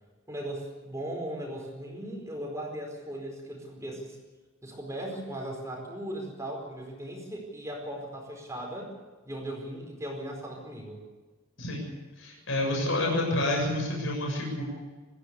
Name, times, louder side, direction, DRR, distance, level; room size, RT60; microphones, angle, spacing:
voice 1, 0.3-4.2 4.6-8.9 9.2-11.0, right 1 dB, 15° right, 0 dB, 4.6 m, -38 dB
voice 2, 12.2-14.6, left 1 dB, 70° left, 0 dB, 7.1 m, -28 dB
24.0 x 15.0 x 8.2 m, 1.4 s
head